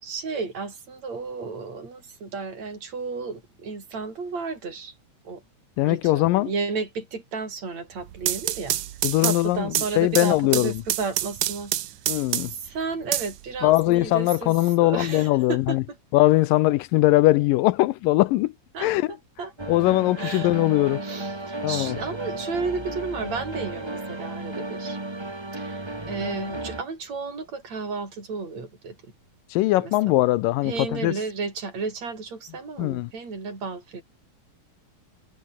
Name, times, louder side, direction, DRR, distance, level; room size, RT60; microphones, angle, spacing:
voice 1, 0.0-4.9 5.2-5.4 5.8-8.8 9.2-11.7 12.5-15.8 18.7-18.9 19.4-19.5 20.2-20.5 21.0-25.0 25.6-29.0 29.8-30.1 30.6-34.0, right 4 dB, 50° right, 8.0 m, -33 dB
voice 2, 5.8-6.5 9.0-9.7 10.0-10.7 12.1-12.5 13.6-15.8 16.1-18.5 18.8-19.1 19.7-21.0 21.6-22.0 29.5-31.1 32.8-33.1, left 17 dB, 80° left, 2.2 m, -21 dB
sound 1, 8.0-12.7 13.1-14.1, right 13 dB, 65° right, 2.3 m, -28 dB
sound 2, 19.6-26.8, right 2 dB, 25° right, 0.5 m, -34 dB
omnidirectional pair, 4.1 m